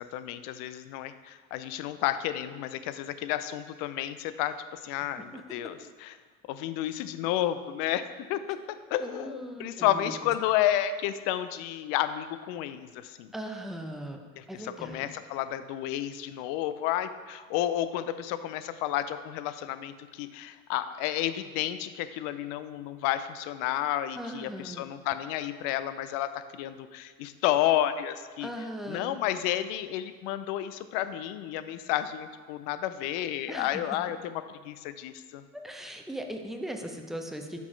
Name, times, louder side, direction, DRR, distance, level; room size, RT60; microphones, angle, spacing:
voice 1, 0.0-6.1 6.5-8.6 8.9-13.3 14.4-28.5 28.9-35.4, left 12 dB, 80° left, 12 dB, 0.5 m, -31 dB
voice 2, 9.0-10.1 13.3-14.2 14.5-15.1 24.2-24.9 28.4-29.2 33.5-34.0 35.5-37.6, right 1 dB, ahead, 3 dB, 0.6 m, -39 dB
6.0 x 4.3 x 4.5 m, 1.5 s
supercardioid pair, 80°, 43 cm